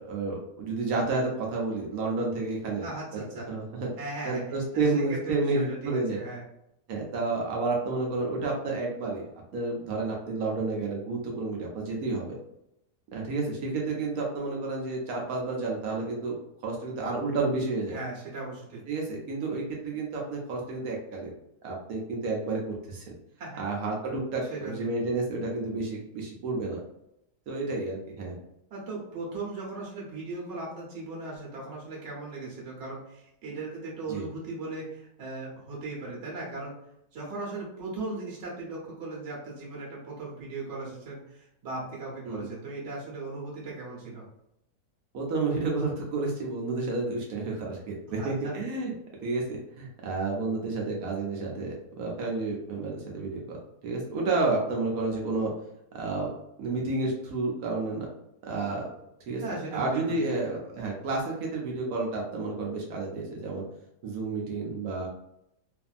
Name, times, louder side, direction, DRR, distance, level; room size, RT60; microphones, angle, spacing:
voice 1, 0.0-2.9 3.1-3.9 4.3-6.2 6.9-9.3 9.5-12.4 13.1-16.4 16.6-18.0 18.9-21.3 21.6-23.2 23.6-26.8 27.5-28.4 34.1-34.2 42.3-42.5 45.1-48.9 49.2-53.6 53.8-55.5 55.9-56.3 56.6-58.1 58.4-58.9 59.3-59.4 59.7-63.6 64.0-65.1, right 3 dB, 70° right, -1 dB, 1.1 m, -30 dB
voice 2, 2.8-3.5 4.0-4.4 4.7-6.4 17.9-18.8 23.4-23.6 24.5-24.7 28.7-36.7 37.1-44.2 48.1-48.5 59.4-60.4, right 3 dB, 50° right, -4 dB, 1.2 m, -38 dB
2.6 x 2.5 x 2.4 m, 0.81 s
omnidirectional pair, 1.7 m